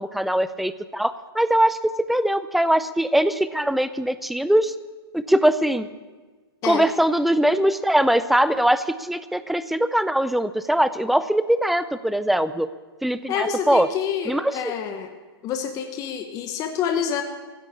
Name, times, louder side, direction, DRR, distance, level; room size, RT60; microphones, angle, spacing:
voice 1, 0.0-4.7 5.1-5.9 6.6-12.7 13.0-13.9 14.2-14.7, right 1 dB, ahead, 13 dB, 0.4 m, -21 dB
voice 2, 13.3-15.1 15.4-17.2, left 8 dB, 25° left, 5 dB, 1.2 m, -27 dB
15.5 x 8.5 x 8.5 m, 1.3 s
hypercardioid pair, 140°, 13 cm